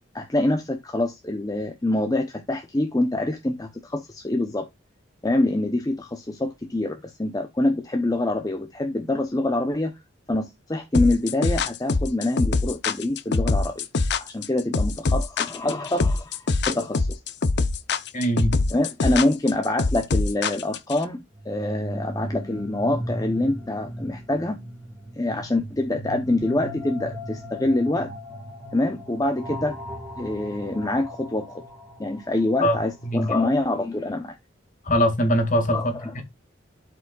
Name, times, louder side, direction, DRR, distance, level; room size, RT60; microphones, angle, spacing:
voice 1, 0.1-4.7 5.2-10.0 10.3-13.9 14.2-16.4 16.7-17.2 18.7-24.6 25.2-28.1 28.7-29.8 30.2-31.6 32.0-34.4 35.7-36.2, left 2 dB, 20° left, 0.7 m, -25 dB
sound 1, 10.9-21.0, left 3 dB, 60° left, 0.7 m, -23 dB
voice 2, 18.1-18.5 32.6-32.8 33.0-33.3 34.9-35.8 36.1-36.2, equal, 40° left, 2.0 m, -21 dB
sound 2, 21.3-33.2, equal, ahead, 2.1 m, -37 dB
12.0 x 5.0 x 2.4 m
head